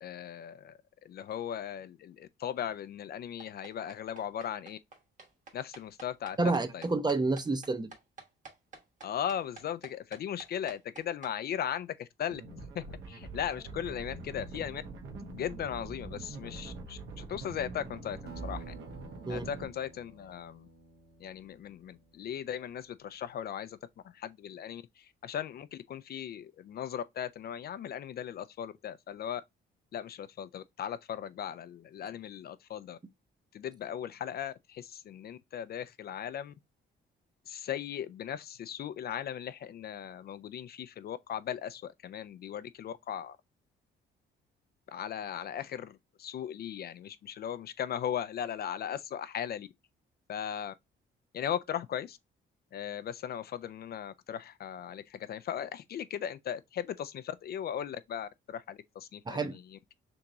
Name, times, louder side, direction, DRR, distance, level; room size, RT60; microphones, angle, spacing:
voice 1, 0.0-4.8 5.5-6.4 6.7-6.8 9.0-14.8 15.2-18.7 19.3-20.7 21.2-23.8 24.0-29.4 29.9-33.0 33.5-36.5 37.5-43.4 44.9-49.7 50.3-50.7 51.3-52.2 52.7-59.9, left 9 dB, 50° left, 0.4 m, -38 dB
sound 1, 3.4-11.3, right 4 dB, 40° right, 1.2 m, -50 dB
voice 2, 6.4-7.9 19.2-19.5 59.3-59.6, right 3 dB, 20° right, 0.6 m, -29 dB
sound 2, 12.3-19.7, right 3 dB, 80° right, 1.1 m, -44 dB
Acoustic guitar, 18.3-23.1, right 4 dB, 55° right, 1.0 m, -53 dB
3.5 x 2.9 x 3.8 m
cardioid pair, 90°, 20 cm